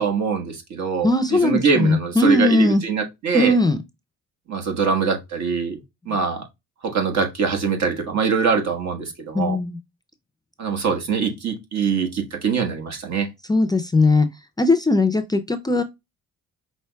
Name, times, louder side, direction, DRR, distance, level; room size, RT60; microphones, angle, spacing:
voice 1, 0.0-3.6 4.5-6.5 6.8-9.6 10.6-13.3, right 5 dB, 65° right, 1.3 m, -23 dB
voice 2, 1.0-2.8 3.3-3.8 9.3-9.8 13.5-14.3 14.6-15.8, left 2 dB, 15° left, 0.4 m, -19 dB
5.6 x 3.0 x 2.2 m
cardioid pair, 90°, 30 cm